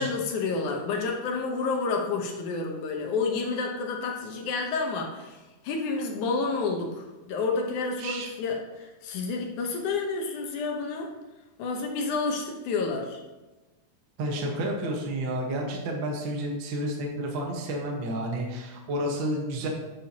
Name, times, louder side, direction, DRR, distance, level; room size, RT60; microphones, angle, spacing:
voice 1, 0.0-11.1 11.6-13.2, left 4 dB, 70° left, 2 dB, 2.2 m, -30 dB
voice 2, 8.0-8.3 14.2-19.7, right 1 dB, 55° right, 0 dB, 1.3 m, -30 dB
9.0 x 8.6 x 2.9 m, 1.1 s
omnidirectional pair, 4.0 m